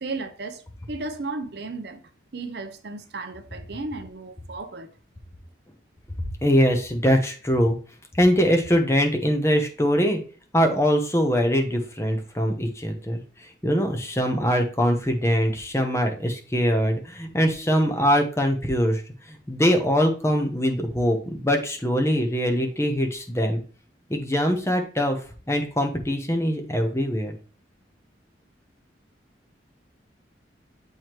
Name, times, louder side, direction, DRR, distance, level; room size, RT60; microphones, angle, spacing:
voice 1, 0.0-2.0 2.3-4.9, right 3 dB, 60° right, 0.6 m, -34 dB
voice 2, 6.4-7.8 8.1-10.2 10.5-19.0 19.3-23.6 24.1-25.2 25.5-27.3, equal, 15° left, 0.9 m, -22 dB
7.1 x 4.5 x 3.0 m
head